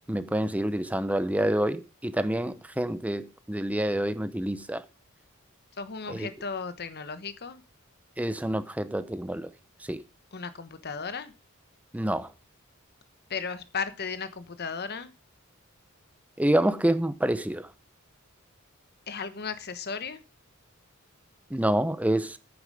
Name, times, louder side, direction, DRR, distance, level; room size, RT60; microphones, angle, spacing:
voice 1, 0.1-4.8 6.1-6.3 8.2-9.5 9.9-10.0 11.9-12.3 16.4-17.7 21.5-22.4, right 1 dB, 5° right, 0.7 m, -27 dB
voice 2, 5.8-7.6 10.3-11.3 13.3-15.1 19.1-20.2, left 5 dB, 50° left, 1.1 m, -35 dB
9.5 x 8.8 x 5.0 m
head